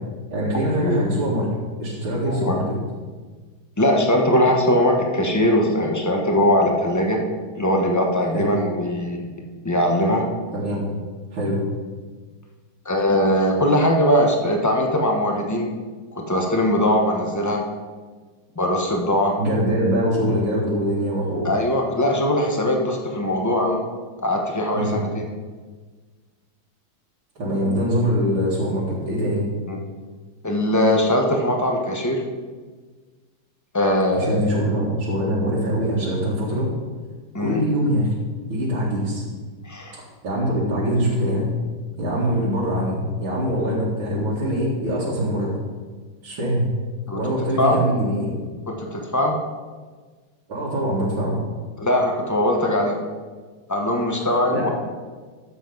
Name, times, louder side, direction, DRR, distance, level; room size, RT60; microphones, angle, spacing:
voice 1, 0.3-1.5 1.8-2.8 8.3-8.5 10.5-10.9 11.3-11.6 19.4-21.5 24.7-25.0 27.4-29.4 34.2-36.7 37.4-38.1 38.5-39.2 39.9-41.5 42.0-45.5 46.2-46.7 47.2-48.4 50.5-51.4 54.5-54.7, equal, 80° right, -7 dB, 2.9 m, -23 dB
voice 2, 2.2-2.6 3.8-7.2 7.5-9.3 9.6-10.3 12.8-15.7 16.1-17.6 18.6-19.4 21.4-23.8 24.2-25.3 29.7-29.8 30.4-32.2 33.7-34.5 37.3-37.6 39.6-40.0 47.1-47.2 47.6-47.8 48.7-49.4 51.8-53.0 53.7-54.7, left 1 dB, 20° left, 1 dB, 0.5 m, -21 dB
12.5 x 7.6 x 4.0 m, 1.4 s
omnidirectional pair, 2.2 m